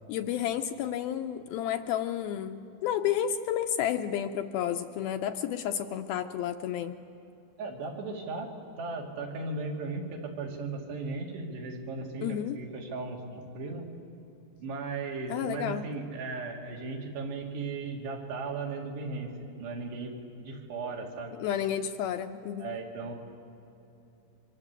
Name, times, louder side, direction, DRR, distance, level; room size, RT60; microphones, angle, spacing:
voice 1, 0.1-7.0 12.2-12.6 15.3-15.8 21.4-22.7, left 10 dB, 75° left, 6 dB, 2.3 m, -31 dB
voice 2, 7.6-8.5 8.8-13.9 14.6-19.3 19.6-20.1 20.4-21.3 22.6-23.1, right 3 dB, 80° right, 0 dB, 4.8 m, -36 dB
27.5 x 24.5 x 8.3 m, 3.0 s
omnidirectional pair, 4.8 m